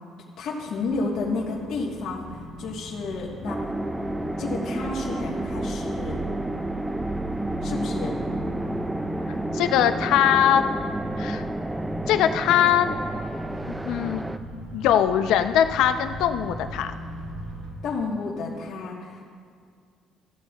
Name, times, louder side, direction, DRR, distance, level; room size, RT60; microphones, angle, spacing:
voice 1, 0.4-3.6 4.4-6.2 7.6-8.2 17.8-19.3, left 3 dB, 60° left, -4 dB, 1.4 m, -31 dB
sound 1, 0.7-17.7, right 1 dB, 80° right, 2.1 m, -37 dB
sound 2, 3.5-14.4, right 1 dB, 10° right, 0.3 m, -31 dB
voice 2, 9.5-10.6 11.2-11.4 12.1-12.9 13.7-14.2 14.7-16.9, left 10 dB, 85° left, 9 dB, 0.6 m, -21 dB
15.5 x 12.5 x 2.4 m, 2.1 s
cardioid pair, 155°, 0 cm